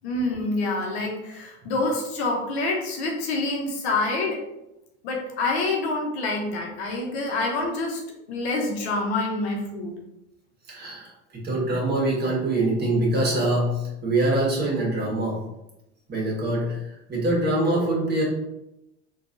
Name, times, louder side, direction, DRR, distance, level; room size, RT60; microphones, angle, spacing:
voice 1, 0.0-4.4 5.0-8.0 8.3-9.9, left 2 dB, 80° left, 0 dB, 1.0 m, -27 dB
voice 2, 10.7-15.4 16.1-18.2, right 1 dB, 30° right, -3 dB, 1.4 m, -24 dB
3.8 x 2.6 x 2.6 m, 0.90 s
hypercardioid pair, 95°, 32 cm